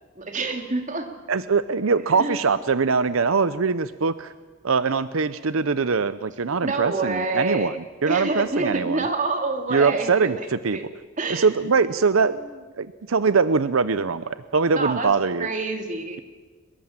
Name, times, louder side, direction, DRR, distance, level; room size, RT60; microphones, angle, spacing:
voice 1, 0.1-1.1 2.0-2.4 6.6-10.8 11.2-11.5 12.3-12.5 14.7-15.1 15.4-16.2, right 3 dB, 40° right, 4 dB, 2.9 m, -27 dB
voice 2, 1.3-4.3 4.6-7.7 8.0-9.0 9.7-10.4 10.6-10.8 11.3-12.4 12.8-15.5, right 5 dB, 90° right, 14 dB, 0.7 m, -22 dB
24.0 x 22.0 x 7.4 m, 1.3 s
head